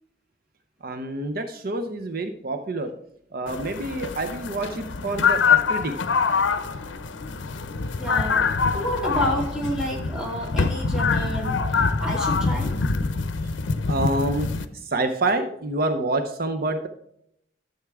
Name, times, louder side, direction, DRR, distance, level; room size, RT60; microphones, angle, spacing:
voice 1, 0.8-2.9 3.3-5.9 7.9-8.0 8.4-8.5 13.9-16.9, right 2 dB, 55° right, 7 dB, 0.7 m, -27 dB
sound 1, 3.5-14.7, left 5 dB, 85° left, 0.7 m, -25 dB
voice 2, 8.0-12.7, equal, 5° right, -3 dB, 2.5 m, -30 dB
12.0 x 7.2 x 3.6 m, 0.72 s
head